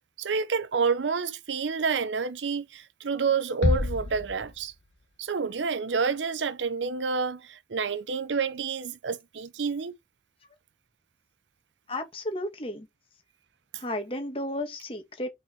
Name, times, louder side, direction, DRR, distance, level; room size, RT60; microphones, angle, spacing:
voice 1, 0.2-4.7 5.2-9.9, right 5 dB, 75° right, 0.6 m, -29 dB
sound 1, 3.6-5.2, left 1 dB, 75° left, 1.5 m, -28 dB
voice 2, 11.9-12.9 13.8-15.3, left 1 dB, 30° left, 2.0 m, -33 dB
5.8 x 5.5 x 4.5 m
head